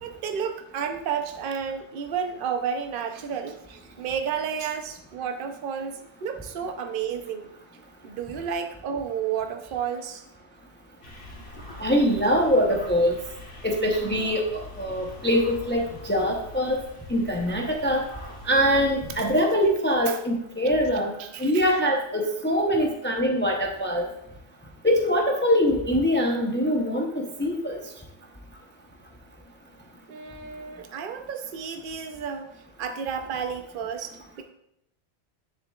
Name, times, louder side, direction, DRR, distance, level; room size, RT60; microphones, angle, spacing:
voice 1, 0.0-7.5 8.0-10.2 20.1-20.2 21.2-21.7 30.1-34.4, right 7 dB, 55° right, 6 dB, 0.8 m, -32 dB
sound 1, 11.0-19.3, left 2 dB, 65° left, 1.7 m, -44 dB
voice 2, 11.8-13.2 13.6-16.8 17.1-18.1 18.4-21.1 21.4-24.1 24.8-27.8, equal, 10° left, 1 dB, 0.7 m, -23 dB
10.0 x 6.7 x 2.4 m, 0.77 s
omnidirectional pair, 1.2 m